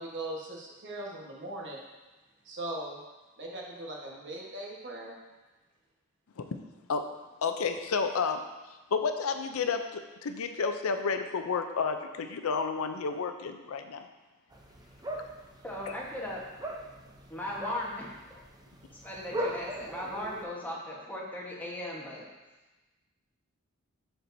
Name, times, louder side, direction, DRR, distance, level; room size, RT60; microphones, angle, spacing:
voice 1, 0.0-1.8 2.4-3.0 3.4-5.2, right 1 dB, 55° right, -2 dB, 1.3 m, -39 dB
voice 2, 7.4-14.1, left 5 dB, 75° left, 7 dB, 0.5 m, -31 dB
sound 1, 14.5-20.5, equal, 20° right, 0.5 m, -40 dB
voice 3, 15.6-16.4 17.3-18.4 18.9-22.3, left 1 dB, 10° left, -4 dB, 1.2 m, -38 dB
11.0 x 4.5 x 2.7 m, 1.1 s
head